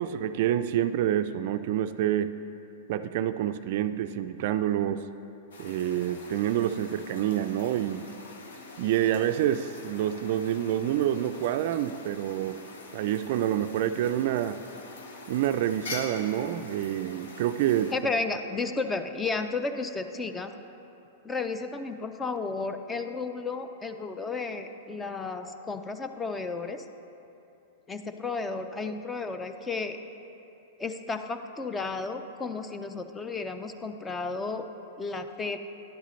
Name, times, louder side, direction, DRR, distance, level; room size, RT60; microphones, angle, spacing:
voice 1, 0.0-2.3 2.9-5.0 5.6-8.1 8.8-12.6 12.9-14.6 15.3-17.9, right 11 dB, 60° right, 11 dB, 0.3 m, -27 dB
sound 1, 5.5-17.9, left 3 dB, 80° left, 0.9 m, -44 dB
voice 2, 17.9-20.5 21.2-26.8 27.9-30.0 30.8-34.6 35.0-35.6, left 3 dB, 15° left, 8 dB, 0.4 m, -33 dB
11.0 x 8.1 x 3.1 m, 2.8 s
hypercardioid pair, 125°, 0 cm